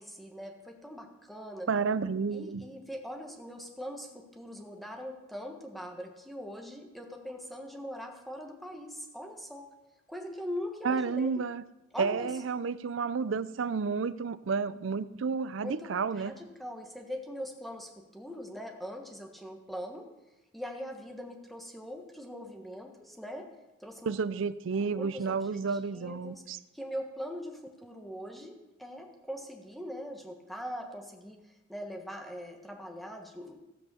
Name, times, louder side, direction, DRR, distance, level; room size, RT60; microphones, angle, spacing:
voice 1, 0.0-1.7 2.3-9.7 10.1-11.4 11.9-12.4 15.6-20.1 20.5-23.5 23.8-24.2 24.7-26.4 26.7-33.6, equal, ahead, 3 dB, 1.4 m, -42 dB
voice 2, 1.7-2.6 10.8-11.6 12.0-16.3 24.0-26.6, right 5 dB, 70° right, 16 dB, 0.5 m, -31 dB
16.0 x 5.6 x 6.9 m, 1.0 s
head